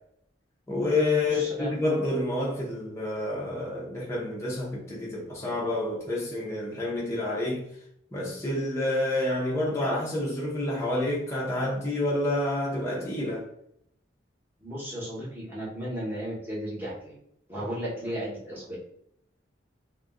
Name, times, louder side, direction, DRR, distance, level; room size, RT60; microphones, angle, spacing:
voice 1, 0.7-7.7 8.1-13.4, left 2 dB, 15° left, 0.6 m, -28 dB
voice 2, 1.3-1.7 14.6-17.1 17.5-18.8, equal, 10° right, 0.9 m, -35 dB
2.4 x 2.1 x 3.5 m
head